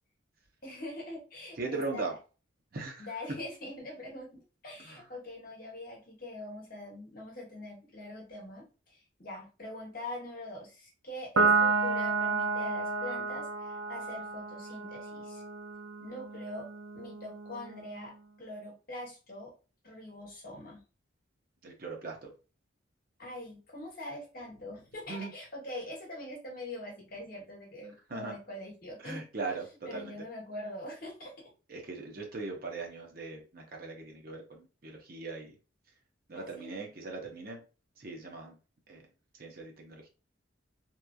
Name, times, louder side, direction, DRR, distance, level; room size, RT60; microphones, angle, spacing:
voice 1, 0.6-2.1 3.0-15.4 16.0-16.7 16.9-18.1 18.4-19.5 19.8-20.8 23.2-29.2 29.9-31.5 36.3-36.9, left 1 dB, 45° left, -1 dB, 1.0 m, -43 dB
voice 2, 1.6-2.2 2.7-3.1 4.8-5.0 21.6-22.3 25.1-25.3 28.1-28.3 29.0-30.2 31.7-35.6 36.3-37.6 38.0-38.6 38.9-39.0 39.4-40.1, right 3 dB, 50° right, 1 dB, 0.7 m, -39 dB
Piano, 11.4-18.1, right 4 dB, 85° right, 0.4 m, -31 dB
2.9 x 2.4 x 2.3 m, 0.33 s
head